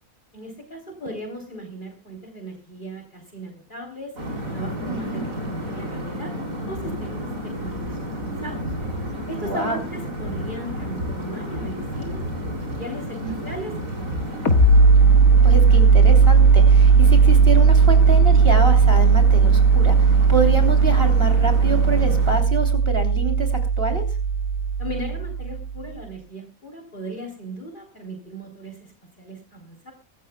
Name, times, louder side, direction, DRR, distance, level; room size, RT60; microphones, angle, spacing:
voice 1, 0.3-4.2 4.5-6.3 6.7-8.6 9.3-12.2 12.5-14.5 24.8-29.9, right 1 dB, 35° left, 4 dB, 3.6 m, -37 dB
sound 1, 4.2-22.4, equal, 65° right, 4.6 m, -32 dB
voice 2, 4.9-5.3 9.4-9.8 13.2-13.4 15.4-24.0, right 3 dB, 40° right, 4 dB, 3.4 m, -27 dB
sound 2, 14.5-25.8, right 5 dB, 75° left, 2.2 m, -16 dB
24.0 x 14.0 x 2.2 m, 0.29 s
omnidirectional pair, 1.5 m